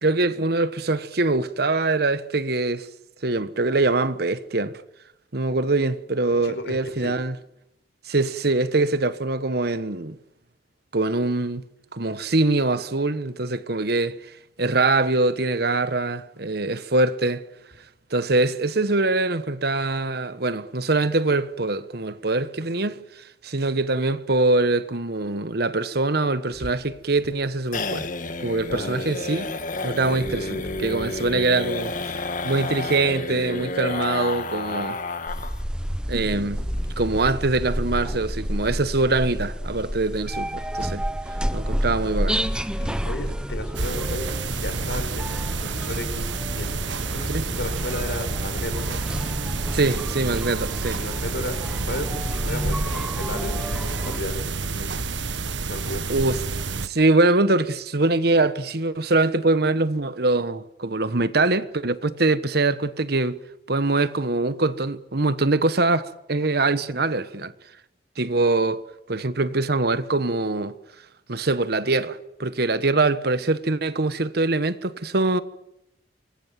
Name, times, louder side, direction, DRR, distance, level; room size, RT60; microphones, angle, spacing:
voice 1, 0.0-2.9 3.2-4.8 5.3-7.4 8.0-10.2 10.9-11.6 11.9-17.4 18.1-28.1 28.4-29.5 29.8-32.1 32.4-35.0 36.1-36.7 37.0-41.0 41.5-42.4 47.3-47.5 49.7-51.0 56.1-56.4 56.8-63.4 63.7-67.5 68.2-68.8 69.1-70.7 71.3-75.4, right 2 dB, 60° right, 1.3 m, -23 dB
voice 2, 6.4-7.1 28.7-29.0 42.8-44.3 44.6-46.8 47.1-49.0 50.7-51.6 51.8-54.9 55.6-56.0, left 1 dB, 65° left, 4.6 m, -34 dB
sound 1, 26.5-35.6 35.9-36.0 36.3-36.4 36.7-37.2, left 3 dB, 45° left, 1.8 m, -30 dB
sound 2, 35.3-54.2, equal, 5° right, 1.0 m, -30 dB
sound 3, 43.7-56.9, right 4 dB, 85° right, 1.4 m, -29 dB
25.5 x 21.5 x 9.3 m
head